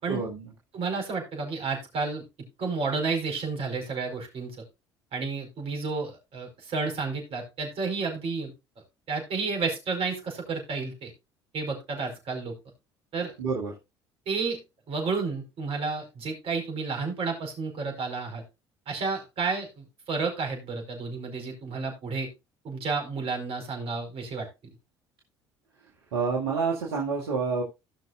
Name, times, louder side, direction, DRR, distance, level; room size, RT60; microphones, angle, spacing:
voice 1, 0.1-0.4 13.4-13.7 26.1-27.6, right 5 dB, 75° right, -2 dB, 2.0 m, -28 dB
voice 2, 0.7-2.2 2.6-4.6 5.1-8.5 9.1-11.1 11.5-12.5 13.1-13.3 14.3-14.6 14.9-18.4 18.9-22.3 22.6-24.5, right 4 dB, 50° right, 3 dB, 4.9 m, -31 dB
17.0 x 6.2 x 2.5 m, 0.24 s
hypercardioid pair, 55°, 12 cm